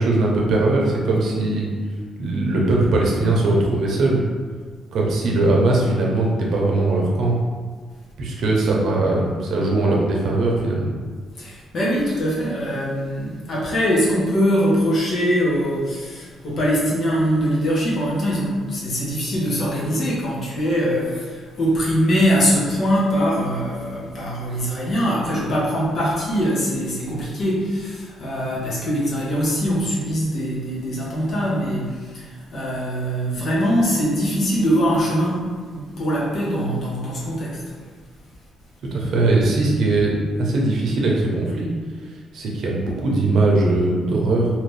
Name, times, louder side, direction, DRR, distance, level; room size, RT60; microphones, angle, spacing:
voice 1, 0.0-1.7 2.2-4.2 4.9-7.3 8.2-10.9 38.9-41.7 42.3-44.5, right 2 dB, 70° right, -2 dB, 0.7 m, -20 dB
voice 2, 11.4-35.5 35.7-37.6, equal, 55° left, -6 dB, 1.1 m, -22 dB
3.0 x 2.5 x 3.2 m, 1.5 s
cardioid pair, 90°, 0 cm